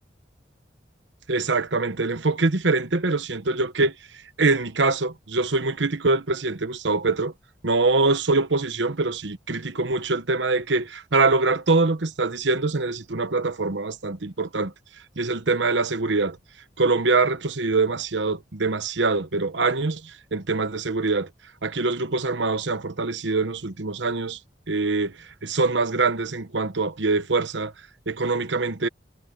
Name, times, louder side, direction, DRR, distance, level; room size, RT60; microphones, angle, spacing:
voice 1, 1.3-3.9 4.4-7.3 7.6-14.7 15.2-16.4 16.8-21.3 21.6-24.4 24.7-27.7 28.1-28.9, right 3 dB, 75° right, 1.1 m, -24 dB
head